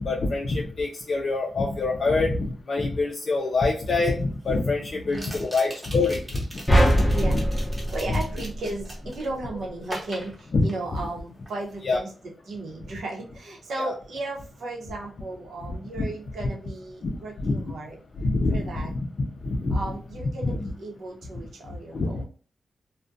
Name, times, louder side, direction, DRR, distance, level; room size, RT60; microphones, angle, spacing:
voice 1, 0.0-7.4 10.5-10.6 11.8-12.0 13.8-13.9 16.0-16.1 17.0-17.6 18.2-19.8 20.4-20.6 21.9-22.2, left 3 dB, 60° left, -1 dB, 0.4 m, -26 dB
sound 1, 3.4-3.5 5.1-9.3 9.8-11.2 11.5-11.8, right 1 dB, 20° right, 0.9 m, -41 dB
voice 2, 4.9-5.3 7.1-7.4 7.9-18.0 18.5-18.9 19.7-22.2, right 2 dB, 85° right, 0 dB, 0.8 m, -35 dB
sound 2, 6.7-9.1, equal, 15° left, 0.6 m, -22 dB
2.4 x 2.2 x 2.5 m, 0.39 s
cardioid pair, 80°, 0 cm